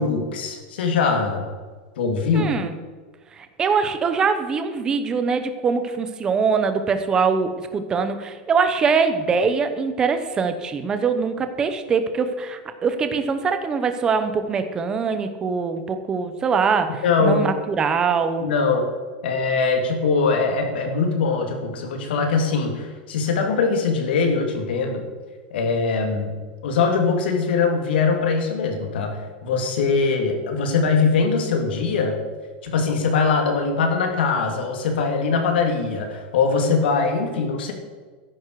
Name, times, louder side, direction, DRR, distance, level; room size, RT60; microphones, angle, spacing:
voice 1, 0.0-1.4 2.0-2.5 17.0-17.4 18.4-18.9 19.2-25.0 25.5-26.3 26.6-32.2 32.6-37.7, left 4 dB, 75° left, 3 dB, 3.0 m, -22 dB
voice 2, 2.3-2.7 3.4-18.5, right 5 dB, 15° right, 9 dB, 0.8 m, -23 dB
14.0 x 11.0 x 4.8 m, 1.4 s
supercardioid pair, 180°, 6 cm